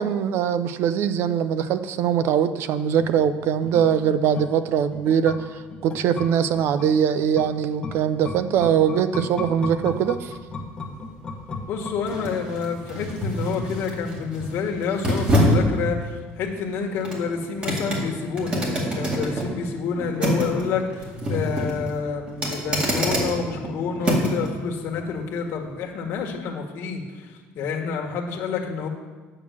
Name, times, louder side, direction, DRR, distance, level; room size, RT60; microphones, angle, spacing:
voice 1, 0.0-10.3, right 8 dB, 55° right, 12 dB, 0.6 m, -22 dB
sound 1, 3.0-12.5 12.8-12.9, left 3 dB, 20° left, 1.0 m, -36 dB
sound 2, 9.8-24.5 24.9-25.1, equal, 25° right, 2.1 m, -27 dB
voice 2, 11.7-28.9, left 5 dB, 55° left, 0 dB, 1.7 m, -28 dB
8.9 x 6.3 x 7.3 m, 1.4 s
cardioid pair, 155°, 5 cm